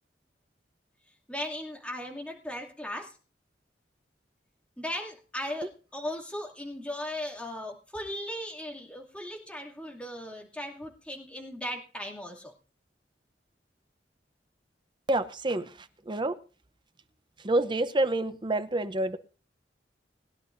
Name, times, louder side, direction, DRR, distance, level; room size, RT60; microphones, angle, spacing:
voice 1, 1.3-3.2 4.8-12.5, left 1 dB, 5° left, -1 dB, 2.5 m, -37 dB
voice 2, 15.1-16.4 17.4-19.2, right 2 dB, 25° right, 12 dB, 0.8 m, -28 dB
20.5 x 11.5 x 2.6 m, 0.37 s
head